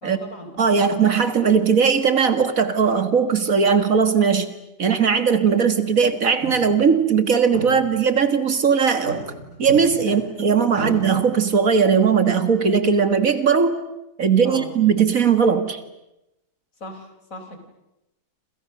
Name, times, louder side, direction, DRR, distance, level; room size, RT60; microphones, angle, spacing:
voice 1, 0.0-1.0 10.0-10.2 10.8-10.9 14.4-14.7 16.8-17.6, left 1 dB, 55° left, 6 dB, 4.6 m, -38 dB
voice 2, 0.6-4.5 4.8-9.2 9.6-13.8 14.2-15.8, right 6 dB, 55° right, 10 dB, 2.1 m, -18 dB
sound 1, 5.8-6.1 6.4-6.9 7.2-7.3 7.5-8.4 8.9-10.4 10.8-11.2, right 2 dB, 80° right, 8.0 m, -34 dB
28.5 x 27.5 x 6.7 m, 0.90 s
omnidirectional pair, 1.7 m